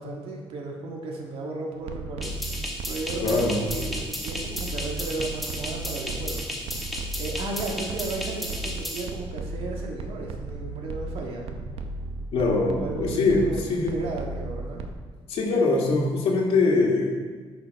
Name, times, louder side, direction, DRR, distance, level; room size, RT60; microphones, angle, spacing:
voice 1, 0.0-6.5 7.2-11.5 12.7-14.9, right 2 dB, 65° right, 0 dB, 1.7 m, -35 dB
sound 1, 1.8-14.9, right 3 dB, 90° right, 0.7 m, -36 dB
sound 2, 2.2-9.1, equal, ahead, 1.2 m, -34 dB
voice 2, 3.2-3.6 12.3-13.4 13.7-14.0 15.3-17.2, left 3 dB, 75° left, -3 dB, 1.8 m, -22 dB
10.0 x 5.4 x 4.6 m, 1.5 s
cardioid pair, 145°, 10 cm